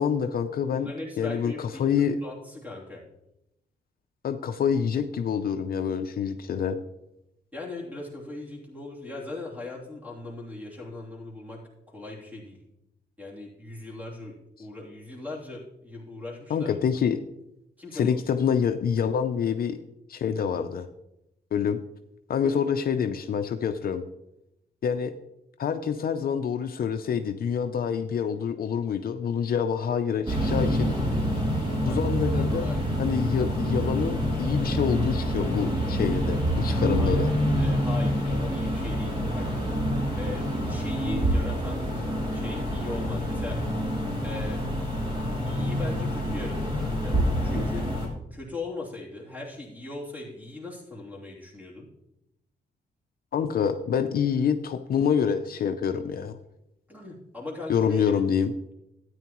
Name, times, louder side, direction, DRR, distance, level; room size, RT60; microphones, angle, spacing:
voice 1, 0.0-0.9 1.2-2.2 4.2-6.8 16.5-17.2 17.9-19.8 20.1-20.9 21.5-21.8 22.3-24.0 24.8-25.1 25.6-30.9 31.8-32.7 33.0-37.3 53.3-56.4 57.7-58.5, left 7 dB, 55° left, 8 dB, 0.5 m, -26 dB
voice 2, 0.7-3.0 7.5-12.6 13.2-16.7 17.8-18.2 22.4-22.6 31.9-32.8 37.0-37.2 37.6-39.5 40.2-41.9 42.3-43.6 44.2-44.7 45.4-47.9 48.3-51.9 56.9-58.0, left 2 dB, 10° right, -3 dB, 3.0 m, -39 dB
sound 1, 30.3-48.1, equal, 30° right, 2.9 m, -27 dB
13.0 x 9.3 x 3.0 m, 0.87 s
cardioid pair, 125°, 18 cm